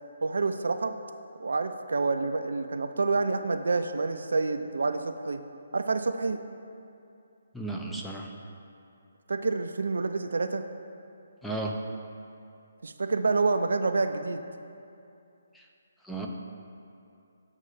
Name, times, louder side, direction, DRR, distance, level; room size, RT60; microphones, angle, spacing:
voice 1, 0.2-1.0 1.4-5.4 5.7-6.4 9.3-10.6 12.8-14.4, right 3 dB, 75° right, 8 dB, 0.3 m, -28 dB
voice 2, 7.5-8.3 11.4-11.8 15.5-15.7 16.0-16.3, right 2 dB, ahead, -1 dB, 0.4 m, -34 dB
7.6 x 2.7 x 5.4 m, 2.6 s
figure-of-eight pair, 150°, 0 cm